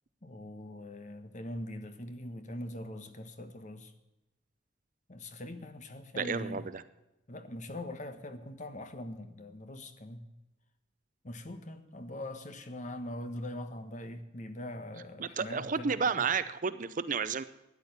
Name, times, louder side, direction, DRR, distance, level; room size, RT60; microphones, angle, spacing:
voice 1, 0.2-3.9 5.1-6.7 7.3-10.3 11.2-16.3, left 1 dB, 40° left, 8 dB, 1.3 m, -42 dB
voice 2, 6.2-6.8 15.2-17.4, right 5 dB, 40° right, 14 dB, 0.5 m, -31 dB
13.5 x 9.9 x 8.2 m, 0.97 s
head